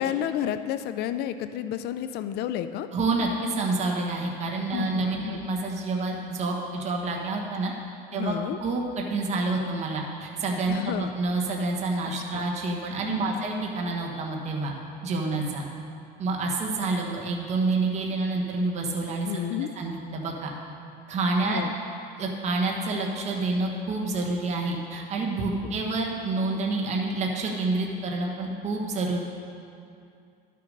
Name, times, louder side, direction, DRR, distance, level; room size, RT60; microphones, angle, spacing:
voice 1, 0.0-2.9 4.7-5.4 8.1-8.6 10.7-11.1 12.3-12.4 13.1-13.4 19.2-19.7 21.4-21.7 25.6-25.7, left 10 dB, 60° left, 11 dB, 0.5 m, -31 dB
voice 2, 2.9-7.7 8.1-8.3 8.6-14.7 15.0-15.6 16.2-19.3 19.8-20.5 21.1-21.6 22.2-29.2, right 3 dB, 35° right, -1 dB, 1.2 m, -28 dB
12.0 x 6.7 x 5.2 m, 2.5 s
cardioid pair, 135°, 19 cm